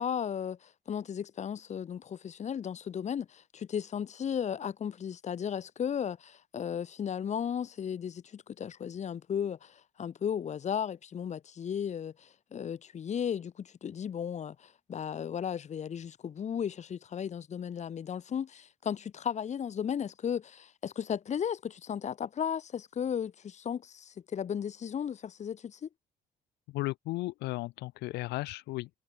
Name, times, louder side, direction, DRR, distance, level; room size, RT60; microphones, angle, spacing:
voice 1, 0.0-25.9, left 8 dB, 45° left, 2.4 m, -35 dB
voice 2, 26.7-28.9, left 19 dB, 90° left, 1.8 m, -35 dB
cardioid pair, 110°, 17 cm